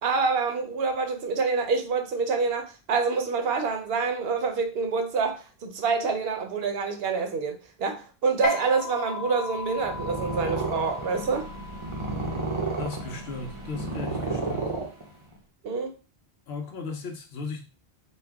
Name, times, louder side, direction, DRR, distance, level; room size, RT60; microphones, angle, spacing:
voice 1, 0.0-11.5 15.6-15.9, right 4 dB, 70° right, 0.9 m, -27 dB
sound 1, 8.4-15.2, equal, 45° left, 0.9 m, -36 dB
Purr, 9.7-15.4, right 3 dB, 35° right, 0.6 m, -32 dB
voice 2, 12.8-14.7 16.5-17.6, left 3 dB, 75° left, 1.0 m, -36 dB
4.2 x 2.2 x 3.4 m
omnidirectional pair, 1.1 m